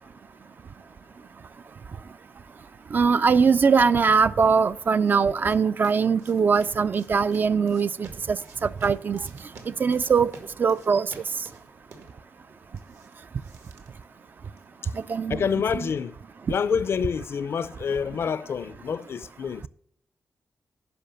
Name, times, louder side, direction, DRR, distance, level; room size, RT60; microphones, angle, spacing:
voice 1, 2.9-9.2 9.8-10.3 10.6-11.1 15.1-15.4 15.8-15.9, right 5 dB, 40° right, 0.4 m, -21 dB
sound 1, 4.7-14.8, right 4 dB, 80° right, 1.9 m, -51 dB
voice 2, 15.3-16.1 16.5-19.7, left 6 dB, 60° left, 0.5 m, -27 dB
10.0 x 5.7 x 6.8 m
wide cardioid pair, 135°, 5 cm